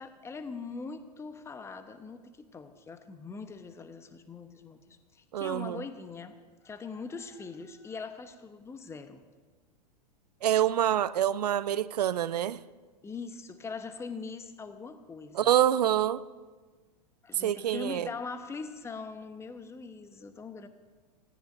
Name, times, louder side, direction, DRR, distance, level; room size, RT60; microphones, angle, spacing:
voice 1, 0.0-6.3 6.6-9.2 13.0-15.5 17.2-20.7, left 4 dB, 10° left, 10 dB, 1.0 m, -42 dB
voice 2, 5.3-5.8 10.4-12.6 15.3-16.2 17.4-18.1, right 11 dB, 70° right, 16 dB, 0.6 m, -26 dB
30.0 x 17.5 x 2.6 m, 1.4 s
figure-of-eight pair, 95°, 21 cm